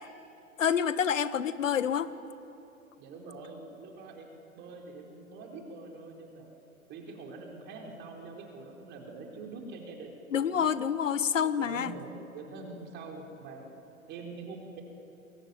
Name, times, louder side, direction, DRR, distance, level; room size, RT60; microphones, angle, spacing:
voice 1, 0.6-2.1 10.3-11.9, left 8 dB, 60° left, 15 dB, 1.4 m, -27 dB
voice 2, 3.0-6.5 6.9-10.6 11.6-13.6 14.1-14.8, right 3 dB, 25° right, 1 dB, 4.3 m, -45 dB
27.0 x 22.0 x 9.6 m, 2.8 s
figure-of-eight pair, 110°, 42 cm